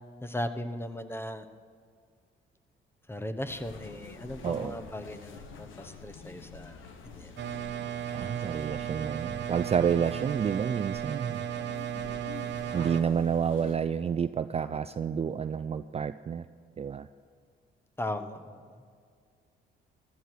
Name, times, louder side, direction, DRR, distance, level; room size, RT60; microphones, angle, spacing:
voice 1, 0.2-1.4 3.1-7.3 18.0-18.6, left 1 dB, 10° left, 10 dB, 1.0 m, -37 dB
sound 1, 3.5-13.8, left 5 dB, 80° left, 1.4 m, -47 dB
voice 2, 4.4-4.8 8.1-11.4 12.7-16.4 16.8-17.1, right 7 dB, 30° right, 12 dB, 0.4 m, -29 dB
sound 2, 7.4-13.0, right 10 dB, 65° right, 0.9 m, -35 dB
15.0 x 12.5 x 4.8 m, 2.1 s
cardioid pair, 90°, 20 cm